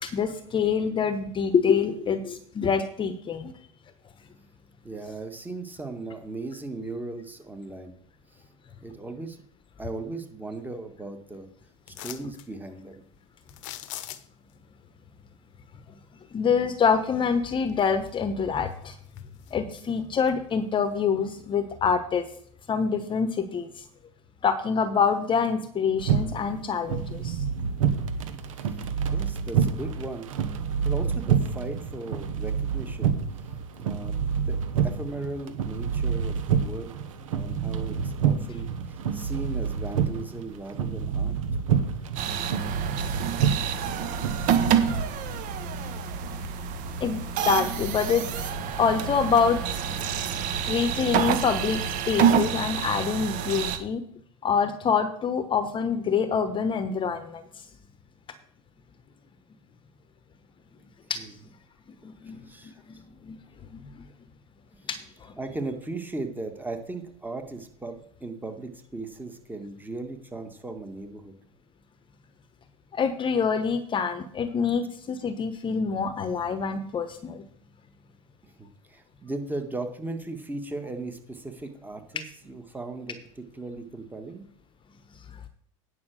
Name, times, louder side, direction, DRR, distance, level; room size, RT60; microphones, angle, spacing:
voice 1, 0.0-3.5 16.3-19.0 19.5-22.2 22.7-23.7 24.4-27.4 47.0-48.5 48.8-49.6 50.7-54.0 54.4-57.4 61.1-61.2 62.0-63.4 63.7-64.0 64.9-65.3 72.9-77.5, left 6 dB, 30° left, 11 dB, 1.0 m, -26 dB
voice 2, 4.8-8.0 8.3-8.4 8.8-9.4 9.8-11.5 11.9-13.0 28.4-30.3 30.8-33.1 33.8-34.2 34.5-36.9 37.3-41.3 61.1-61.4 62.2-63.0 64.8-64.9 65.4-71.3 78.4-84.4, right 2 dB, 10° right, 6 dB, 1.8 m, -37 dB
sound 1, 11.9-12.5 13.5-14.5 17.1-17.2 17.7-18.4 18.7-19.8 20.3-20.4, left 13 dB, 70° left, 0.9 m, -41 dB
sound 2, 26.0-45.0, right 7 dB, 80° right, 1.2 m, -28 dB
sound 3, 42.2-53.8, right 7 dB, 50° right, 1.4 m, -27 dB
9.6 x 5.8 x 6.4 m, 0.62 s
hypercardioid pair, 90°, 17 cm